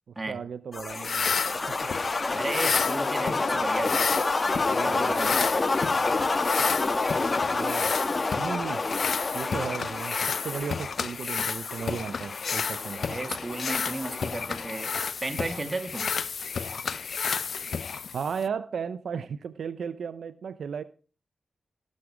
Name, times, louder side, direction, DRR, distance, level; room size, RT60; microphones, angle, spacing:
voice 1, 0.1-1.3 1.7-1.8 4.7-5.2 7.5-7.9 8.4-8.9 9.3-13.2 18.1-20.8, right 6 dB, 80° right, 14 dB, 0.5 m, -35 dB
sound 1, 0.7-15.1, left 3 dB, 45° left, 1.3 m, -29 dB
sound 2, 0.9-18.5, left 6 dB, 70° left, 0.4 m, -32 dB
voice 2, 2.3-4.1 4.9-5.3 13.0-16.1, right 2 dB, 30° right, 7 dB, 1.9 m, -34 dB
18.5 x 6.3 x 4.8 m, 0.37 s
cardioid pair, 50°, 0 cm